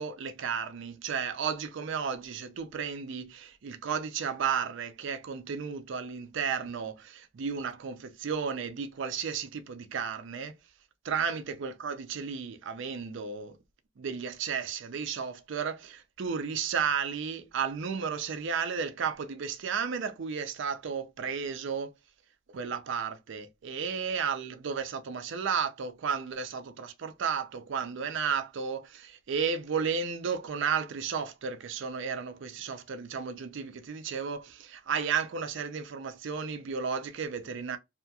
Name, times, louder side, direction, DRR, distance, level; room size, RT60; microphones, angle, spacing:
voice 1, 0.0-10.6 11.0-13.6 14.0-21.9 22.5-37.8, right 6 dB, 65° right, 0.4 m, -33 dB
2.7 x 2.3 x 2.7 m
head